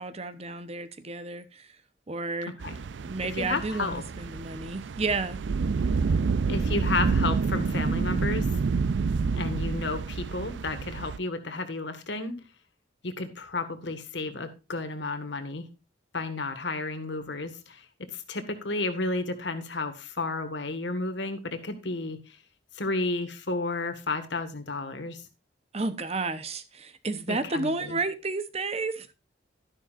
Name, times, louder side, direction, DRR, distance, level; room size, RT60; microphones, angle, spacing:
voice 1, 0.0-1.8 2.1-2.6 3.0-5.4 25.7-29.1, right 3 dB, 35° right, 0.9 m, -32 dB
sound 1, 2.6-11.2, right 4 dB, 70° right, 0.4 m, -28 dB
voice 2, 3.4-4.0 6.5-8.5 9.3-12.4 13.0-15.6 16.1-22.2 22.7-25.2 27.3-28.0, left 3 dB, 65° left, 1.7 m, -32 dB
12.0 x 11.0 x 2.5 m
head